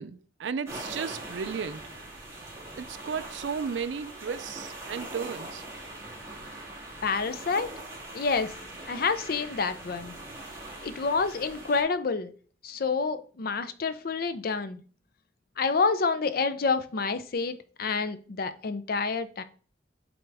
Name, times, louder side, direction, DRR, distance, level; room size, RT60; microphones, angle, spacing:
voice 1, 0.0-1.8 2.8-5.6, right 6 dB, 90° right, 0.4 m, -34 dB
sound 1, 0.7-11.8, right 2 dB, 15° right, 2.2 m, -42 dB
voice 2, 7.0-7.7 8.1-8.5 8.9-10.1 10.8-12.3 12.6-14.8 15.6-19.4, left 4 dB, 55° left, 0.5 m, -28 dB
7.8 x 3.9 x 3.4 m
head